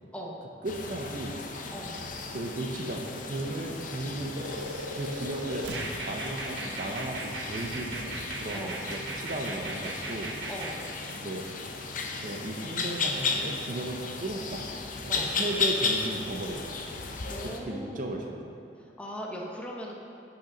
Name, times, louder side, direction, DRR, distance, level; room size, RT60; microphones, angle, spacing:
sound 1, 0.6-17.6, left 4 dB, 50° left, 0.7 m, -35 dB
voice 1, 0.6-1.4 2.3-4.6 4.9-10.3 11.2-11.5 12.2-14.7 15.0-16.8 17.4-18.5, right 1 dB, 45° right, 2 dB, 0.7 m, -35 dB
voice 2, 1.7-2.0 8.5-8.8 10.4-10.8 15.1-15.4 17.3-18.1 18.8-19.9, equal, 5° left, -2 dB, 1.0 m, -39 dB
sound 2, 4.3-10.8, right 2 dB, 75° right, 1.1 m, -37 dB
11.5 x 5.9 x 3.9 m, 2.6 s
head